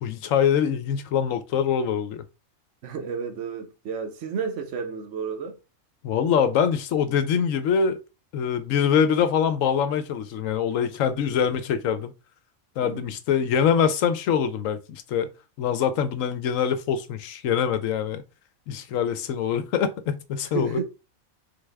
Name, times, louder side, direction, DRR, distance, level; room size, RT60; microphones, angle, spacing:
voice 1, 0.0-2.2 6.0-8.0 8.3-12.1 12.8-15.3 15.6-18.2 18.7-20.8, left 7 dB, 75° left, 1.0 m, -24 dB
voice 2, 2.8-5.6 10.8-11.2 12.8-13.1 20.5-20.8, right 6 dB, 65° right, 1.1 m, -32 dB
4.0 x 3.3 x 3.3 m
omnidirectional pair, 1.4 m